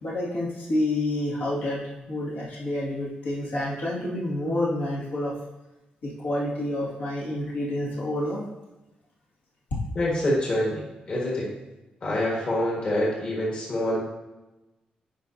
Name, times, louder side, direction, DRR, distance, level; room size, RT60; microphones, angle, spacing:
voice 1, 0.0-1.8 2.1-5.3 6.0-8.4, left 1 dB, 85° left, -6 dB, 2.2 m, -28 dB
voice 2, 10.0-11.5 12.0-14.0, left 1 dB, 45° left, -4 dB, 1.7 m, -26 dB
9.8 x 4.8 x 2.8 m, 1.1 s
cardioid pair, 135°, 3 cm